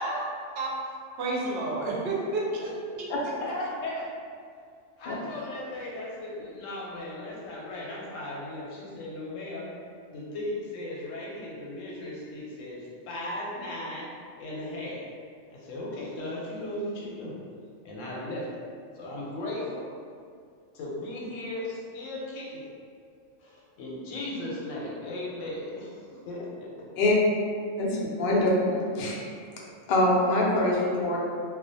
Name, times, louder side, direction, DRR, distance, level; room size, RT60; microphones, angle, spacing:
voice 1, 1.2-3.0, right 2 dB, 65° right, -4 dB, 0.7 m, -30 dB
voice 2, 3.4-4.1 5.0-9.7 10.1-14.1 14.4-15.0 15.5-17.4 17.8-18.5 18.9-19.9 20.7-22.7 23.4-27.1, left 1 dB, 85° left, -4 dB, 1.0 m, -36 dB
voice 3, 27.8-29.2 29.9-31.2, left 1 dB, 60° left, -4 dB, 0.6 m, -24 dB
2.4 x 2.1 x 2.6 m, 2.3 s
omnidirectional pair, 1.3 m